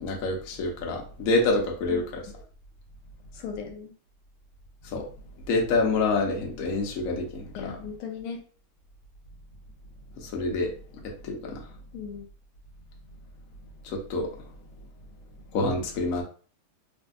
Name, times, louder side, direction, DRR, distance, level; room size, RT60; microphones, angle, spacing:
voice 1, 0.0-2.2 4.9-5.0 5.5-7.8 10.2-10.7 11.2-11.6 13.9-14.3 15.5-16.2, left 3 dB, 65° left, 1 dB, 0.8 m, -27 dB
voice 2, 3.3-3.9 7.6-8.4 11.9-12.3, left 6 dB, 85° left, 4 dB, 1.5 m, -37 dB
3.3 x 2.6 x 2.3 m, 0.40 s
omnidirectional pair, 2.3 m